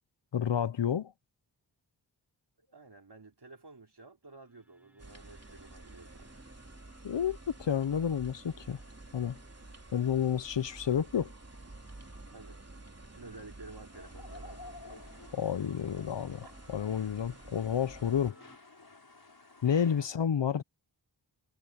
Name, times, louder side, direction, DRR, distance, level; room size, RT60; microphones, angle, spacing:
voice 1, 0.3-1.1 7.0-8.8 9.1-9.4 9.9-11.3 15.3-18.3 19.6-20.6, left 8 dB, 75° left, 0.8 m, -30 dB
voice 2, 2.7-6.3 12.3-12.6 13.1-14.9 16.4-16.5 20.0-20.2, right 3 dB, 60° right, 4.4 m, -52 dB
sound 1, 4.2-18.6, equal, 5° right, 5.4 m, -63 dB
sound 2, 5.0-18.3, right 2 dB, 35° right, 3.1 m, -51 dB
sound 3, 13.9-20.1, left 3 dB, 55° left, 7.9 m, -53 dB
cardioid pair, 45°, 44 cm